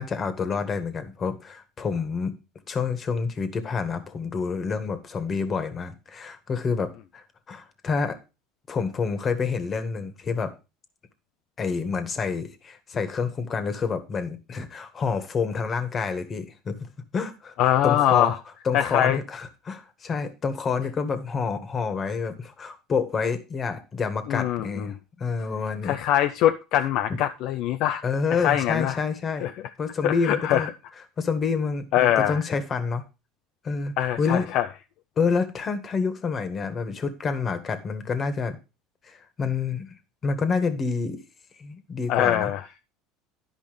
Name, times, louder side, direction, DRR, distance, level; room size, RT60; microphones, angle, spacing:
voice 1, 0.0-2.4 2.7-8.2 8.7-10.5 11.6-17.5 17.8-18.4 18.7-26.0 28.0-29.5 29.8-30.7 31.2-33.0 33.6-34.5 35.2-38.6 39.0-40.0 40.2-41.2 41.6-42.5, left 5 dB, 35° left, 1.6 m, -28 dB
voice 2, 17.6-18.4 18.7-19.2 24.3-25.0 25.8-28.0 28.3-29.0 29.4-29.5 30.0-30.7 31.9-32.4 34.0-34.7 42.1-42.6, left 11 dB, 60° left, 0.6 m, -23 dB
11.0 x 5.1 x 5.1 m
supercardioid pair, 100°, 0 cm